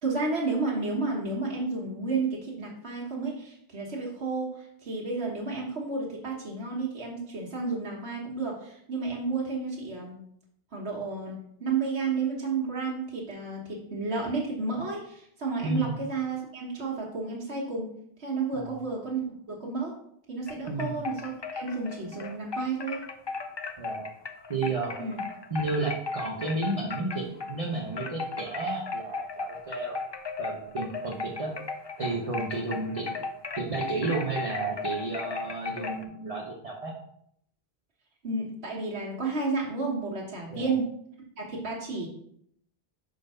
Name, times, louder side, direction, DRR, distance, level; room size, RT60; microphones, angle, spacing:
voice 1, 0.0-10.2 10.7-17.9 18.2-19.2 19.5-20.0 20.3-23.0 25.0-25.2 38.2-40.9 41.4-42.1, right 4 dB, 85° right, -3 dB, 1.6 m, -31 dB
voice 2, 15.6-16.0 18.5-18.8 20.7-21.1 23.8-24.1 24.5-25.0 25.5-30.0 30.4-31.5 32.0-33.1 33.5-36.9 40.5-40.7, right 3 dB, 35° right, -3 dB, 1.0 m, -32 dB
sound 1, 20.5-27.6 27.9-36.0, left 4 dB, 35° left, 0.5 m, -36 dB
5.9 x 4.0 x 5.4 m, 0.70 s
omnidirectional pair, 1.1 m